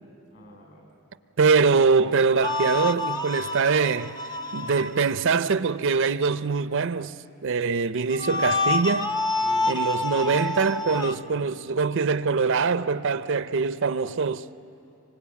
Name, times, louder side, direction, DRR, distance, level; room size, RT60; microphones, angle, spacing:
voice 1, 0.3-1.1 9.4-10.5 10.8-11.0 11.2-11.5, equal, 55° left, 6.2 m, -47 dB
voice 2, 1.4-4.2 4.5-7.2 7.4-9.1 9.7-14.4, right 5 dB, 55° right, 0.5 m, -23 dB
sound 1, 2.4-5.2 8.1-11.2, left 3 dB, 20° left, 0.6 m, -28 dB
26.0 x 25.5 x 8.5 m
head